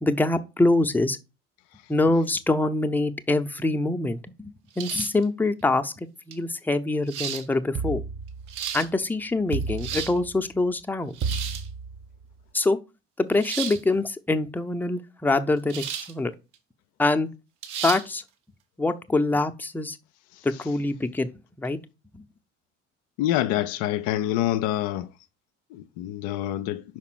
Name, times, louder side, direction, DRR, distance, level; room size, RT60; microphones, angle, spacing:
voice 1, 0.0-1.2 1.9-4.5 4.8-8.0 8.7-11.2 12.5-12.8 13.2-16.3 17.0-17.3 17.8-18.2 18.8-20.0 20.4-21.3 21.6-21.8 22.1-22.2, left 2 dB, 5° left, 0.7 m, -24 dB
sound 1, 4.8-5.2 6.3-6.4 7.1-7.5 8.3-8.9 9.6-10.2 11.1-11.7 13.4-13.8 15.7-16.1 16.5-16.6 17.6-18.0, right 9 dB, 55° right, 1.2 m, -33 dB
sound 2, 7.7-8.9 9.5-10.6 11.2-12.3, right 5 dB, 35° right, 0.8 m, -32 dB
voice 2, 23.2-25.1 25.7-26.8, left 13 dB, 55° left, 0.5 m, -26 dB
5.7 x 4.3 x 6.2 m
figure-of-eight pair, 55°, 36 cm